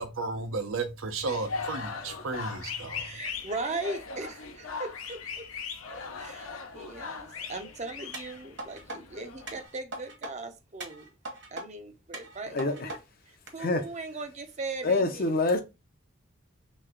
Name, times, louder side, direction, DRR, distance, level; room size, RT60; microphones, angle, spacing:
voice 1, 0.0-3.2, right 3 dB, 80° right, 0.7 m, -34 dB
sound 1, 1.2-9.6, left 5 dB, 85° left, 0.7 m, -39 dB
voice 2, 3.0-5.4 6.2-11.1 11.5-13.0 13.5-15.3, right 3 dB, 35° right, 0.6 m, -39 dB
sound 2, 8.1-9.0 9.5-10.3 10.8-11.7 12.1-13.0 13.5-13.6, right 2 dB, 55° right, 1.2 m, -40 dB
voice 3, 12.5-13.0 13.6-13.9 14.8-15.6, left 2 dB, 45° left, 0.6 m, -26 dB
3.3 x 3.1 x 3.6 m
head